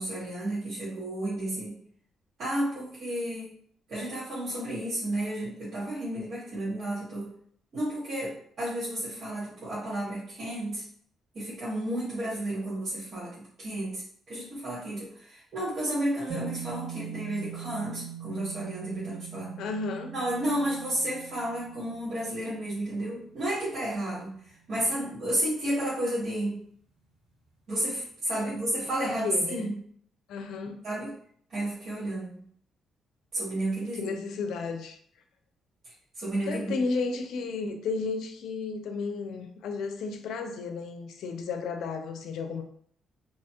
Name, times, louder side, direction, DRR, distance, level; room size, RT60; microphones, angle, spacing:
voice 1, 0.0-1.8 2.4-3.5 3.9-7.3 7.7-10.8 11.3-19.5 20.1-26.6 27.7-29.8 30.8-31.1 31.5-32.4 33.3-34.1 35.8-36.8, right 1 dB, 50° right, 1.2 m, -32 dB
sound 1, 16.3-24.7, right 8 dB, 80° right, 1.4 m, -42 dB
voice 2, 19.6-20.1 29.0-29.7 30.3-30.8 33.9-35.0 36.5-42.6, left 4 dB, 75° left, 0.5 m, -33 dB
2.9 x 2.4 x 4.3 m
cardioid pair, 145°, 0 cm